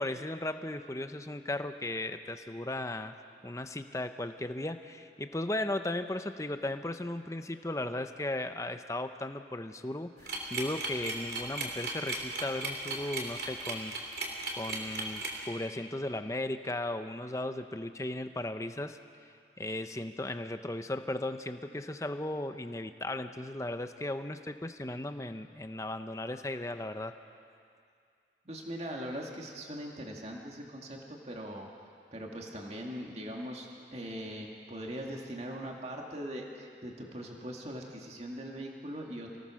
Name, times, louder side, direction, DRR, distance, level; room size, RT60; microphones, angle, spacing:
voice 1, 0.0-3.1 3.4-13.9 14.6-19.0 19.6-27.1, left 1 dB, 20° left, 8 dB, 0.7 m, -36 dB
sound 1, 10.3-15.4, right 3 dB, 65° right, 3.3 m, -35 dB
voice 2, 28.4-31.7 32.1-39.4, equal, 35° right, 0 dB, 2.2 m, -41 dB
28.0 x 18.0 x 6.4 m, 2.4 s
head